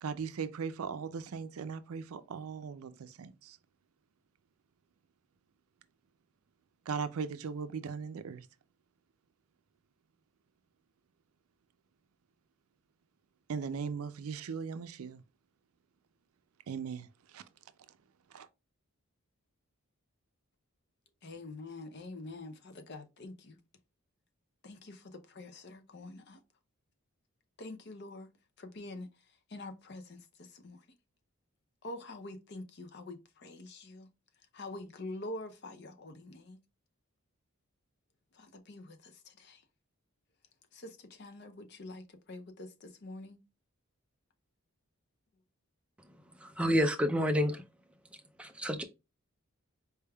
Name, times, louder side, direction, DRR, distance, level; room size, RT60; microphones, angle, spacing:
voice 1, 0.0-3.6 6.9-8.5 13.5-15.2 16.7-17.4 18.3-18.5, right 6 dB, 80° right, 0.4 m, -38 dB
voice 2, 21.2-23.6 24.6-26.4 27.6-28.3 28.6-29.1 29.5-30.8 31.8-34.1 34.5-36.6 38.3-39.6 40.7-43.4, left 2 dB, 50° left, 0.6 m, -46 dB
voice 3, 46.4-47.6 48.4-48.8, equal, 5° right, 0.4 m, -29 dB
4.5 x 3.4 x 2.2 m
head